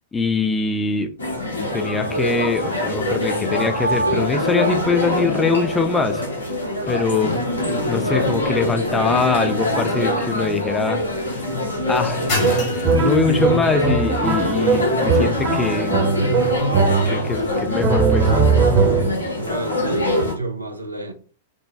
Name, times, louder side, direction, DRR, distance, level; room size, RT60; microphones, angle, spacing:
voice 1, 0.1-1.1 1.5-6.2 6.9-11.0 11.3-11.4 11.9-15.9 17.1-18.3, left 4 dB, 15° left, 0.5 m, -23 dB
sound 1, 1.2-20.3, left 1 dB, 80° left, 0.9 m, -24 dB
sound 2, 8.8-17.6, left 3 dB, 40° left, 1.9 m, -35 dB
sound 3, 12.4-17.4 17.8-19.3, right 4 dB, 30° right, 1.0 m, -20 dB
voice 2, 19.4-21.1, right 2 dB, 85° right, 0.7 m, -30 dB
5.1 x 2.1 x 3.2 m
figure-of-eight pair, 95°, 0 cm